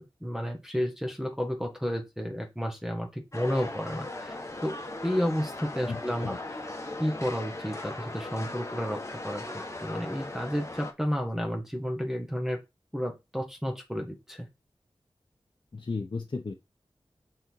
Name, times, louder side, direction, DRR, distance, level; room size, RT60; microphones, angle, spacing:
voice 1, 0.2-4.8 5.0-6.3 7.0-9.0 9.2-12.6 12.9-14.5, equal, 5° right, 3 dB, 1.8 m, -31 dB
sound 1, 3.3-10.9, left 2 dB, 30° left, 1.5 m, -38 dB
voice 2, 5.9-6.4 15.7-16.5, left 4 dB, 55° left, 3 dB, 0.9 m, -34 dB
6.4 x 4.2 x 4.7 m, 0.23 s
cardioid pair, 45°, 10 cm